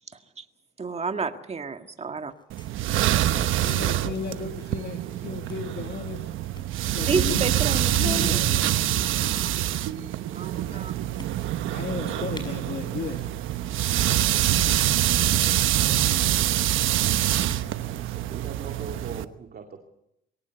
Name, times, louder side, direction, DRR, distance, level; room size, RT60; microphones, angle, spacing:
voice 1, 0.8-2.3 7.0-8.4 10.3-10.9, right 5 dB, 30° right, 7 dB, 1.8 m, -30 dB
sound 1, 2.3-3.7 4.0-4.1 4.3-4.5 4.9-5.1 5.5-5.7 6.4-6.7 7.3-7.5 7.8-8.1 9.0-9.4 10.1-10.2 10.6-10.7 11.2-11.7 12.0-12.1 12.3-12.5 13.1-13.4 13.6-14.0 14.5-14.9 16.1-16.3 17.3-17.7, left 2 dB, 25° left, 6.7 m, -46 dB
sound 2, 2.5-19.2, right 13 dB, 85° right, 1.1 m, -25 dB
voice 2, 3.6-6.3 6.9-9.0 10.1-10.3 10.6-10.9 11.7-13.3, left 7 dB, 55° left, 5 dB, 1.8 m, -35 dB
voice 3, 18.0-19.8, right 5 dB, 50° right, 4 dB, 2.5 m, -40 dB
22.5 x 18.0 x 8.1 m, 0.82 s
cardioid pair, 90°, 20 cm